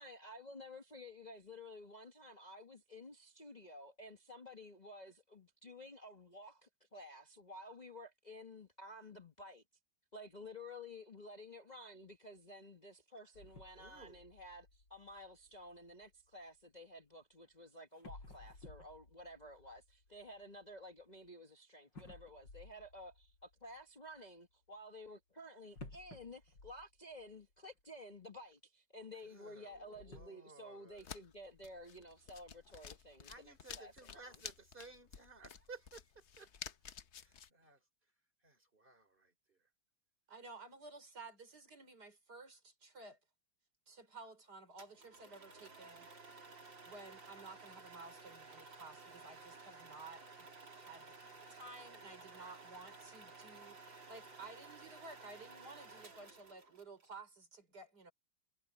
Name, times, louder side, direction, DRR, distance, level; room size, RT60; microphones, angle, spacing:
voice 1, 0.0-9.6 10.1-34.4, left 1 dB, 25° left, 1.6 m, -53 dB
sound 1, 13.3-16.5 17.5-17.6 17.9-21.3 21.9-23.8 25.7-27.5 27.8-27.9 28.5-28.6 29.6-30.3, left 2 dB, 70° left, 7.1 m, -57 dB
voice 2, 13.7-14.2 29.3-31.0 33.3-36.5 37.6-37.8 38.4-39.6 52.2-52.6, right 3 dB, 25° right, 4.1 m, -57 dB
sound 2, 30.9-37.5, left 7 dB, 50° left, 0.9 m, -52 dB
voice 3, 40.3-43.2 43.9-46.1 46.8-51.1 51.5-58.1, right 3 dB, 55° right, 5.0 m, -54 dB
sound 3, 44.8-57.1, right 3 dB, 75° right, 4.6 m, -55 dB
omnidirectional pair, 2.1 m